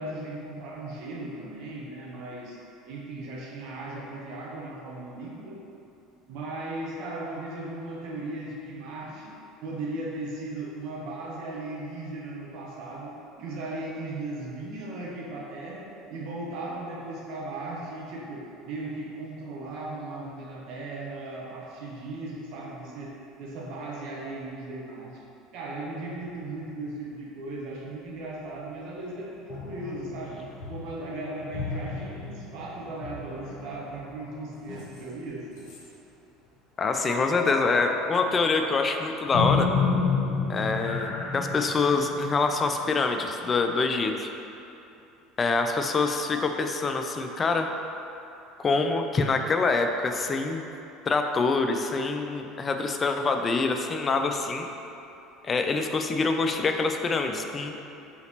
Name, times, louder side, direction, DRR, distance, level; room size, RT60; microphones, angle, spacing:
voice 1, 0.0-2.6 2.9-5.6 6.3-25.2 25.5-35.5, right 2 dB, 60° right, -4 dB, 0.6 m, -37 dB
sound 1, 29.5-35.3 35.6-35.8 36.8-43.5, left 4 dB, 55° left, 0.9 m, -32 dB
voice 2, 36.8-39.7 40.5-44.3 45.4-47.7 48.6-50.6 51.1-54.7 55.4-57.7, left 4 dB, 30° left, 5 dB, 0.3 m, -25 dB
4.0 x 3.9 x 2.8 m, 2.8 s
figure-of-eight pair, 65°, 0 cm